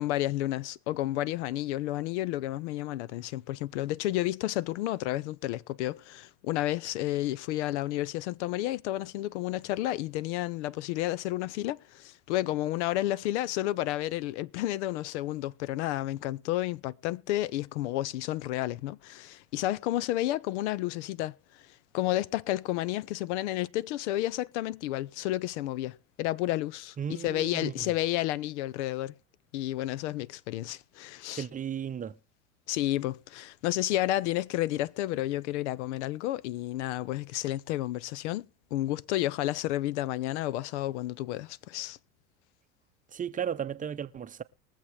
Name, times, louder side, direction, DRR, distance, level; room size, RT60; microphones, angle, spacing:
voice 1, 0.0-21.7 21.9-27.0 27.2-29.1 29.5-31.4 32.7-38.5 38.7-42.0, left 15 dB, 70° left, 0.6 m, -31 dB
voice 2, 27.0-27.9 31.3-32.2 43.1-44.4, right 8 dB, 20° right, 0.7 m, -35 dB
22.0 x 7.4 x 3.3 m
hypercardioid pair, 95°, 36 cm